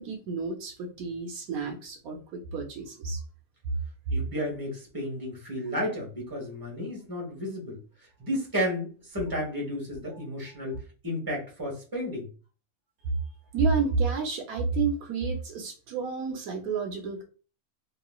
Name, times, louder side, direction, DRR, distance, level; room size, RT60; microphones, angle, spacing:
voice 1, 0.0-3.2 13.5-17.2, right 4 dB, 75° right, 2 dB, 1.1 m, -30 dB
voice 2, 4.1-7.8 8.2-12.3, equal, 15° right, -1 dB, 1.1 m, -32 dB
3.0 x 2.9 x 2.3 m, 0.36 s
omnidirectional pair, 1.5 m